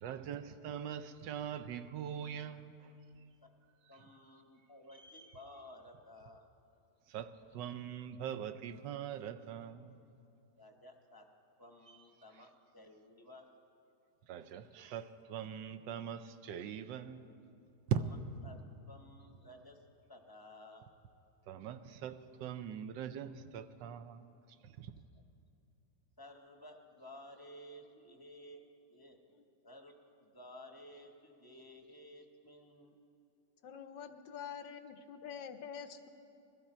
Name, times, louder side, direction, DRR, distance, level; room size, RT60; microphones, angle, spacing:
voice 1, 0.0-2.9 7.1-10.0 14.3-17.3 17.9-18.0 21.5-24.3 24.6-24.9, right 9 dB, 85° right, 11 dB, 1.3 m, -41 dB
voice 2, 3.9-6.5 10.6-11.3 11.6-13.5 14.5-14.8 17.9-18.2 18.4-19.8 20.1-20.9 26.2-28.6 28.9-32.9, left 1 dB, 20° left, 3 dB, 0.7 m, -55 dB
voice 3, 33.6-36.1, left 7 dB, 90° left, 7 dB, 1.5 m, -46 dB
21.0 x 13.5 x 4.4 m, 2.6 s
omnidirectional pair, 1.9 m